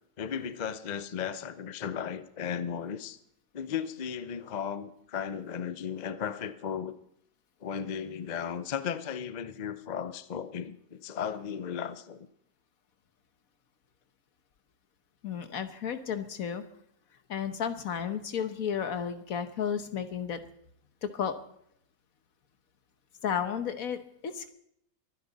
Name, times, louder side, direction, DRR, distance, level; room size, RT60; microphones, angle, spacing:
voice 1, 0.2-3.2 3.5-7.0 7.6-12.3, left 8 dB, 45° left, 12 dB, 0.6 m, -35 dB
voice 2, 15.2-16.6 17.3-20.4 21.0-21.3 23.2-24.5, left 7 dB, 70° left, 9 dB, 1.5 m, -33 dB
23.5 x 10.0 x 4.1 m, 0.72 s
omnidirectional pair, 1.6 m